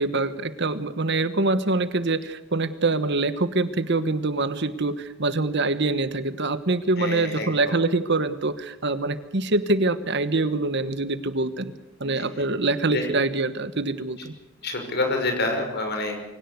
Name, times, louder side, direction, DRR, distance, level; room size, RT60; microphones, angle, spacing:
voice 1, 0.0-11.7 12.0-14.3, right 2 dB, 55° right, 13 dB, 1.2 m, -25 dB
voice 2, 7.0-7.5 12.2-12.3 12.9-13.1 14.6-16.2, left 2 dB, 50° left, 4 dB, 5.8 m, -27 dB
24.0 x 17.5 x 8.1 m, 0.96 s
head